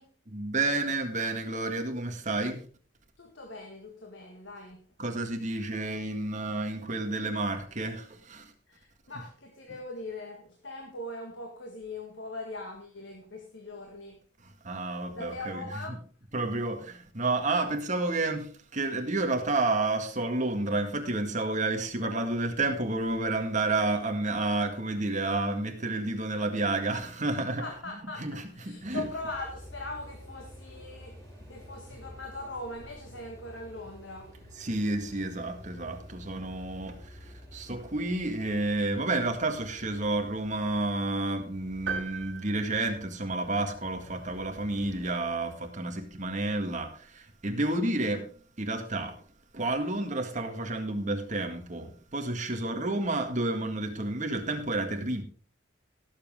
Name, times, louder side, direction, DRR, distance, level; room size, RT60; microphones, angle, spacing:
voice 1, 0.3-2.7 5.0-8.5 14.6-15.6 16.3-27.6 28.2-29.0 34.6-48.3 48.6-49.2 49.5-55.2, right 2 dB, 40° right, 1.9 m, -30 dB
voice 2, 3.2-4.9 8.7-14.2 14.7-16.0 27.6-34.4, left 2 dB, 65° left, 1.8 m, -41 dB
sound 1, 28.8-45.1, left 1 dB, 15° left, 5.9 m, -50 dB
sound 2, 41.9-43.7, right 6 dB, 65° right, 3.0 m, -38 dB
17.5 x 7.6 x 3.7 m
head